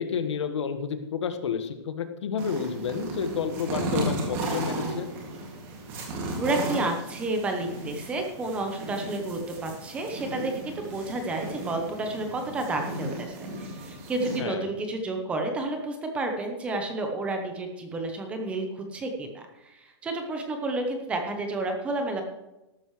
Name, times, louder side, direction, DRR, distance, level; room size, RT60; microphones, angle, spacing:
voice 1, 0.0-5.1 14.4-14.7, left 6 dB, 90° left, 8 dB, 1.5 m, -30 dB
sound 1, 2.4-14.4, right 1 dB, 25° right, 2.3 m, -35 dB
voice 2, 6.4-22.2, right 2 dB, 10° right, 4 dB, 0.8 m, -31 dB
13.5 x 12.0 x 3.2 m, 0.97 s
hypercardioid pair, 180°, 15 cm